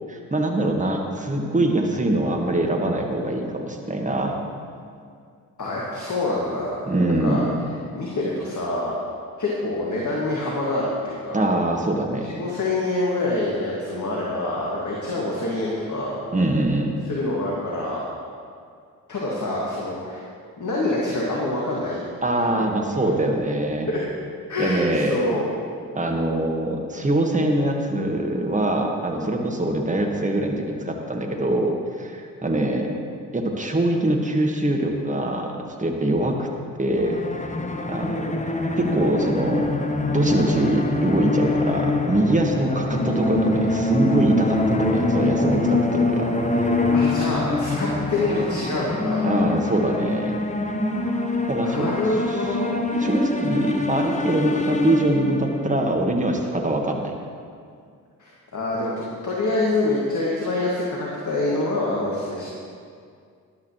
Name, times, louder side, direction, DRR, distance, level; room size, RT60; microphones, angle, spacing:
voice 1, 0.1-4.4 6.9-7.6 11.3-12.3 16.3-16.9 22.2-23.9 24.6-25.2 25.9-33.0 33.3-36.5 36.8-37.2 37.9-38.4 38.8-39.7 40.1-46.8 49.2-50.4 51.5-51.9 53.0-57.1, right 1 dB, 15° right, 2 dB, 1.5 m, -23 dB
voice 2, 5.6-7.4 7.9-9.0 9.4-11.5 12.2-16.2 17.1-18.0 19.1-20.2 20.6-22.1 22.5-22.7 23.2-23.3 23.9-24.0 24.5-25.4 46.9-49.3 51.5-52.7 54.4-54.6 58.2-58.9 59.2-62.5, left 2 dB, 40° left, -4 dB, 2.1 m, -26 dB
sound 1, 36.9-55.7, left 2 dB, 15° left, 1.1 m, -24 dB
13.0 x 11.0 x 3.1 m, 2.2 s
figure-of-eight pair, 45°, 46 cm